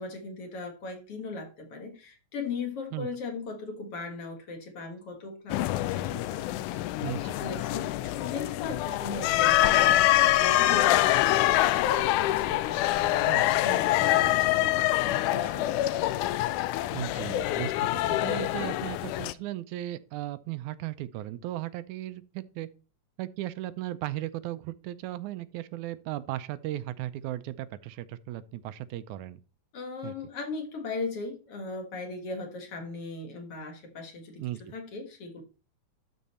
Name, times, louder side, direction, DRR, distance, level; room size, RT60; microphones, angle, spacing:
voice 1, 0.0-6.9 7.4-16.0 29.7-35.4, left 3 dB, 55° left, 2.3 m, -39 dB
sound 1, 5.5-19.3, left 15 dB, 90° left, 2.0 m, -25 dB
voice 2, 7.0-7.4 13.3-13.5 16.9-17.9 18.2-22.7 23.2-29.4 30.0-30.1 34.4-34.7, right 14 dB, 80° right, 2.0 m, -36 dB
12.0 x 4.2 x 4.2 m
omnidirectional pair, 3.4 m